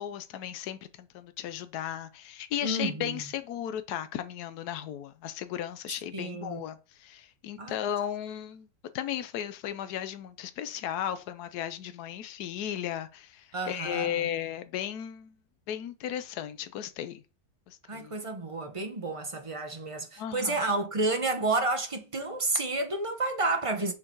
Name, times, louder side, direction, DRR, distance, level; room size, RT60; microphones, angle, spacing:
voice 1, 0.0-8.7 8.9-15.3 15.7-17.2 17.7-18.1 20.2-20.6, left 10 dB, 75° left, 1.3 m, -35 dB
voice 2, 2.6-3.3 6.1-6.7 7.6-7.8 13.5-14.3 17.9-23.9, right 2 dB, 25° right, 0.8 m, -30 dB
7.2 x 5.0 x 4.7 m
omnidirectional pair, 1.7 m